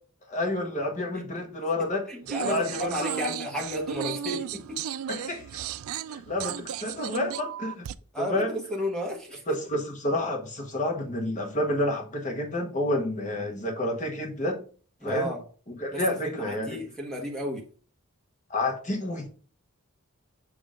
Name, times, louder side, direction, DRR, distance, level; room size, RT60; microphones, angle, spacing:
voice 1, 0.3-2.1 2.4-3.3 5.1-5.6 6.1-7.9 8.2-8.5 9.5-14.6 15.0-15.3 15.7-16.8 18.5-19.3, left 1 dB, 35° left, 1.3 m, -29 dB
voice 2, 2.1-4.8 8.1-9.6 15.0-15.4 15.9-17.6, left 1 dB, 5° left, 1.3 m, -33 dB
sound 1, 2.3-8.0, right 9 dB, 70° right, 0.3 m, -35 dB
7.4 x 3.0 x 5.0 m
head